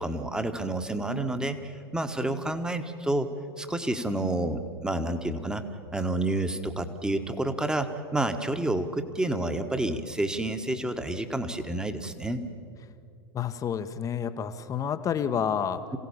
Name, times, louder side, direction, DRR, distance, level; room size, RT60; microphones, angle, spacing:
voice 1, 0.0-3.3 3.6-5.6 5.9-12.4, right 1 dB, 5° right, 8 dB, 1.5 m, -29 dB
voice 2, 13.3-15.8, left 8 dB, 25° left, 11 dB, 1.1 m, -29 dB
27.0 x 16.5 x 7.2 m, 2.5 s
figure-of-eight pair, 90°, 13 cm